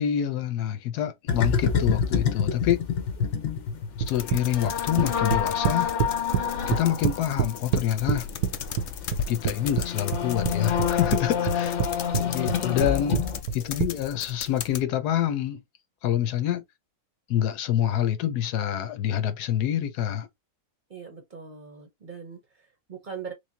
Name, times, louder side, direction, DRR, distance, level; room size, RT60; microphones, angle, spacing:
voice 1, 0.0-2.8 4.1-5.9 6.7-8.3 9.3-11.8 12.2-13.2 13.5-15.6 16.0-16.6 17.3-20.3, left 10 dB, 90° left, 1.3 m, -26 dB
sound 1, 1.3-13.4, left 7 dB, 55° left, 1.0 m, -28 dB
voice 2, 3.1-3.5 11.8-12.6 13.6-13.9 20.9-23.3, right 5 dB, 40° right, 0.8 m, -42 dB
sound 2, 4.0-6.4 6.7-8.5 8.8-9.9 10.1-11.2 11.5-11.9 12.1-13.9, right 8 dB, 80° right, 1.2 m, -25 dB
sound 3, 4.1-14.8, left 8 dB, 70° left, 0.6 m, -37 dB
3.5 x 3.2 x 2.6 m
omnidirectional pair, 1.6 m